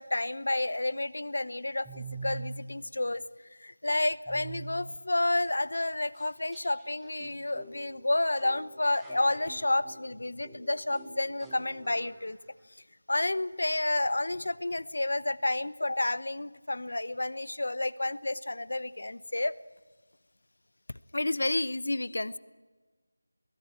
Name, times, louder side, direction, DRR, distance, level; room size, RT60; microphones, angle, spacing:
voice 1, 0.0-3.2 3.6-12.4 13.1-19.5 21.1-22.4, left 2 dB, 65° left, 19 dB, 0.8 m, -30 dB
sound 1, 1.8-2.6 4.3-4.7 5.4-5.5 5.9-6.0 6.1-12.3, right 3 dB, 5° right, 2.0 m, -45 dB
21.5 x 15.5 x 9.0 m, 1.3 s
figure-of-eight pair, 170°, 0 cm